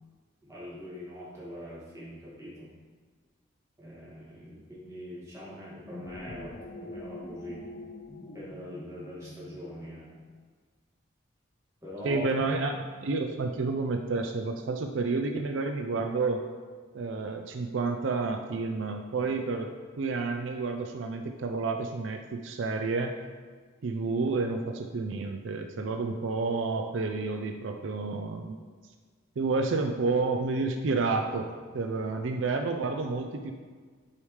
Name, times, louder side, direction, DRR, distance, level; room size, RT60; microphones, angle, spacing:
voice 1, 0.5-2.7 3.8-7.7 8.3-10.1 11.8-12.3 25.9-26.0, equal, 15° right, -8 dB, 2.1 m, -42 dB
sound 1, 5.7-10.3, left 1 dB, 45° left, 0.4 m, -44 dB
voice 2, 12.0-16.4 16.9-23.1 23.8-28.6 29.4-33.5, right 3 dB, 75° right, 5 dB, 0.4 m, -30 dB
8.4 x 4.9 x 3.2 m, 1.5 s
head